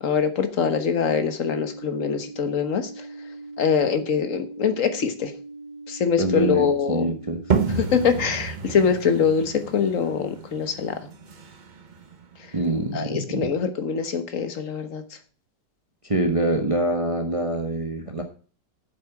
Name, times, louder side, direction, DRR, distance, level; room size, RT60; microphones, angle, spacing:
voice 1, 0.0-2.9 3.6-5.3 5.9-7.1 7.9-11.0 12.9-15.0, left 6 dB, 50° left, 9 dB, 1.5 m, -23 dB
sound 1, 1.4-8.1, right 3 dB, 85° right, 3.1 m, -41 dB
voice 2, 6.2-7.6 12.5-13.5 16.0-18.2, right 2 dB, 20° right, 5 dB, 1.1 m, -25 dB
sound 2, 7.5-13.0, right 5 dB, 40° right, 0.7 m, -30 dB
8.7 x 7.6 x 5.9 m, 0.38 s
omnidirectional pair, 1.9 m